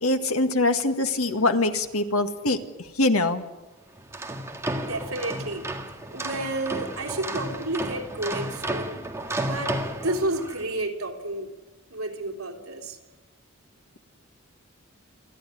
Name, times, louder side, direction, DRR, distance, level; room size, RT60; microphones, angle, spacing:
voice 1, 0.0-2.6 3.0-3.4, left 2 dB, 90° left, 7 dB, 1.9 m, -23 dB
sound 1, 4.0-10.7, right 1 dB, 15° right, 1.9 m, -32 dB
voice 2, 4.8-5.7 6.1-9.0 9.5-11.5 11.9-13.0, right 2 dB, 75° right, 2 dB, 3.4 m, -31 dB
29.0 x 11.5 x 10.0 m, 1.2 s
head